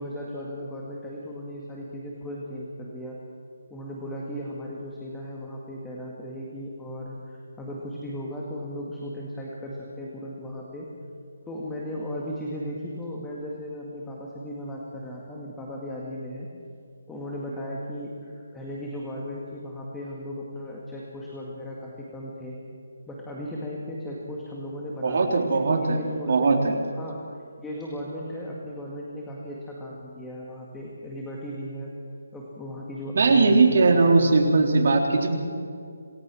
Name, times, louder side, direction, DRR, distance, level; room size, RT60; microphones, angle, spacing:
voice 1, 0.0-3.2 3.7-10.9 11.4-16.5 17.1-22.6 23.1-27.2 27.6-31.9 32.3-35.1, equal, 5° left, -4 dB, 1.9 m, -36 dB
voice 2, 25.0-26.0 26.3-26.7 33.1-35.5, right 3 dB, 45° right, 1 dB, 3.6 m, -20 dB
27.0 x 18.0 x 6.2 m, 2.4 s
hypercardioid pair, 175°, 0 cm